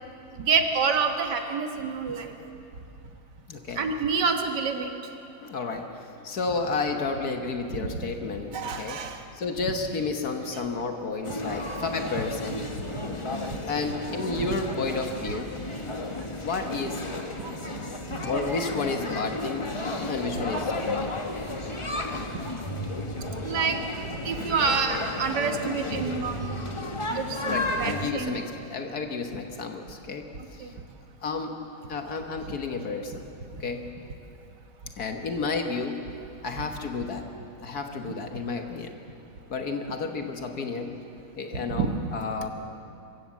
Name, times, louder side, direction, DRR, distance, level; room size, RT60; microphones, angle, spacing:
voice 1, 0.4-2.3 3.8-4.9 8.5-9.2 13.5-13.6 17.4-17.8 18.2-18.3 23.4-23.8 24.1-26.6 27.1-28.4 30.6-30.7 41.7-41.9, right 5 dB, 90° right, 5 dB, 2.0 m, -27 dB
voice 2, 3.5-3.8 5.4-5.9 6.2-9.0 9.3-12.6 13.7-15.5 16.4-17.0 18.2-19.7 20.1-20.7 21.0-21.1 27.5-30.2 30.5-30.7 31.2-31.5 31.9-33.3 33.6-33.8 35.0-36.0 36.4-37.3 37.6-38.9 39.5-40.9 41.4-42.5, left 4 dB, 65° left, 5 dB, 1.8 m, -31 dB
sound 1, 11.2-28.1, left 2 dB, 20° left, 1.1 m, -33 dB
26.0 x 15.5 x 7.3 m, 2.7 s
omnidirectional pair, 1.8 m